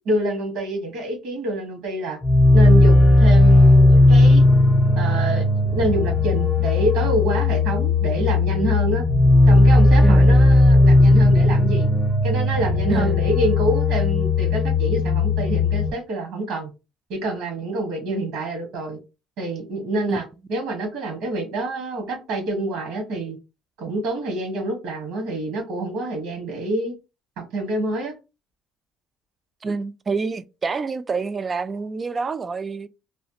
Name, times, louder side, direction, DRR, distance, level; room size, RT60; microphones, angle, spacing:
voice 1, 0.0-2.2 2.5-4.4 5.0-9.0 9.5-11.9 12.2-16.7 17.1-19.0 19.4-20.2 20.5-23.4 23.8-26.9 27.4-28.1, right 2 dB, 75° right, 1.4 m, -27 dB
sound 1, 2.2-15.9, left 2 dB, 25° left, 0.6 m, -16 dB
voice 2, 12.9-13.2 20.1-20.3 29.6-32.9, right 4 dB, 30° right, 0.3 m, -27 dB
3.2 x 2.4 x 2.9 m
supercardioid pair, 90°, 0 cm